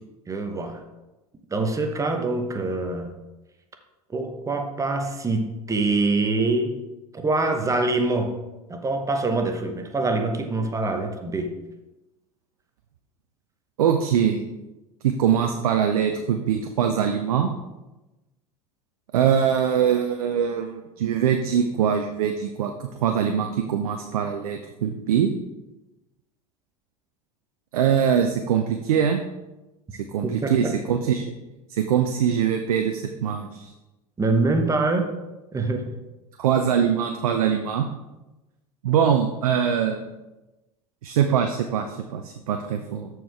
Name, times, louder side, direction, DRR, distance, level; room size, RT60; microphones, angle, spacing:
voice 1, 0.3-0.8 1.5-3.1 4.1-6.8 7.1-8.4 8.7-11.6 30.2-30.8 34.2-35.1 35.5-36.0, right 3 dB, 15° right, 6 dB, 1.0 m, -25 dB
voice 2, 13.8-14.4 15.0-17.5 19.1-25.3 27.7-29.2 30.1-31.2 31.7-33.7 36.4-37.9 38.8-40.0 41.0-43.1, right 8 dB, 65° right, 5 dB, 0.7 m, -23 dB
13.0 x 4.7 x 3.5 m, 1.0 s
figure-of-eight pair, 80°, 19 cm